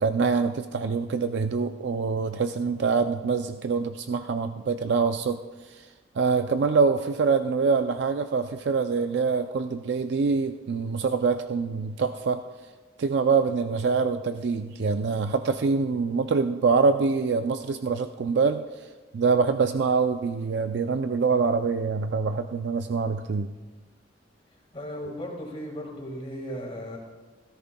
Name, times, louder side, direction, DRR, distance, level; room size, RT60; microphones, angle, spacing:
voice 1, 0.0-5.9 6.2-12.4 13.0-18.9 19.1-23.5 25.1-25.2, right 5 dB, 65° right, 8 dB, 0.4 m, -25 dB
voice 2, 24.7-27.0, equal, 30° left, -1 dB, 1.8 m, -36 dB
17.0 x 13.5 x 2.2 m, 1.3 s
head